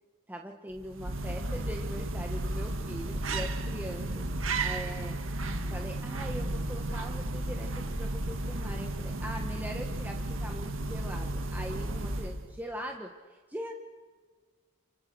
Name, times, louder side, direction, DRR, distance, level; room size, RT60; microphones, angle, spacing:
voice 1, 0.3-4.2 4.6-5.2 5.7-13.7, equal, 10° right, 2 dB, 1.6 m, -41 dB
sound 1, 0.7-12.6, right 2 dB, 70° right, 2.1 m, -33 dB
29.5 x 27.0 x 6.4 m, 1.5 s
head